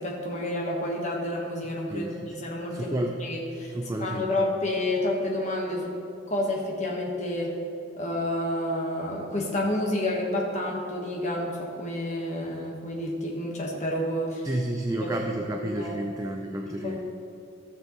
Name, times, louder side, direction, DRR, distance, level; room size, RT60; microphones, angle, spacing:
voice 1, 0.0-3.7 4.0-6.0 6.3-7.6 8.0-14.5 15.0-15.1 15.5-16.0 16.8-17.0, left 1 dB, 35° left, -2 dB, 1.3 m, -29 dB
voice 2, 1.9-2.3 2.7-3.2 3.7-4.3 14.4-17.0, right 1 dB, 15° right, 2 dB, 0.4 m, -31 dB
14.5 x 6.4 x 3.1 m, 2.5 s
head